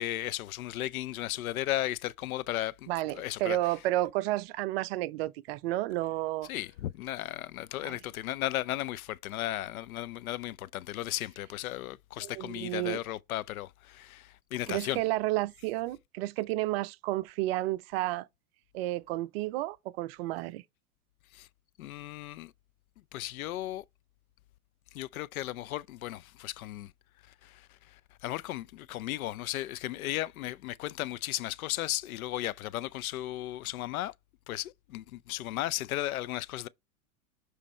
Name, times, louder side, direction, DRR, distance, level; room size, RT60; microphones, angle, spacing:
voice 1, 0.0-3.6 6.5-15.0 21.3-21.5 21.8-22.5 23.1-23.8 24.9-26.9 27.4-34.1 34.5-36.7, left 15 dB, 70° left, 0.5 m, -35 dB
voice 2, 2.9-6.5 7.8-7.9 12.2-13.0 14.7-18.3 18.7-20.6, right 17 dB, 45° right, 0.5 m, -31 dB
7.2 x 3.2 x 4.2 m
hypercardioid pair, 110°, 44 cm